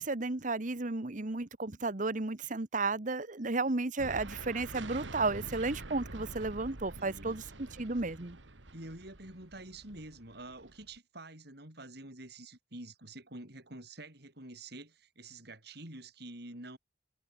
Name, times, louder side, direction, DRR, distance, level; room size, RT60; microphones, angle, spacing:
voice 1, 0.0-7.4 7.8-8.4, right 3 dB, 45° right, 1.3 m, -33 dB
sound 1, 4.0-11.0, right 2 dB, 80° right, 2.0 m, -47 dB
voice 2, 7.0-7.5 8.7-16.8, right 2 dB, 60° right, 7.4 m, -48 dB
head